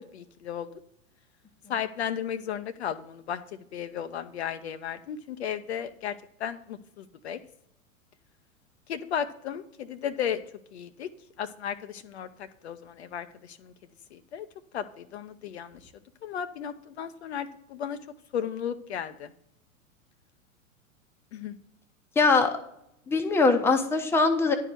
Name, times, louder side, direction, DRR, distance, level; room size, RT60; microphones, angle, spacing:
voice 1, 0.1-0.7 1.7-3.4 3.7-6.1 6.4-7.4 8.9-10.4 10.7-11.1 11.4-13.7 14.1-14.5 14.7-15.8 16.2-18.0 18.3-19.3 21.3-21.5, left 8 dB, 50° left, 10 dB, 0.6 m, -34 dB
voice 2, 22.2-22.5 23.1-24.5, left 3 dB, 5° left, 5 dB, 0.7 m, -22 dB
10.5 x 4.6 x 6.7 m, 0.76 s
figure-of-eight pair, 95°, 42 cm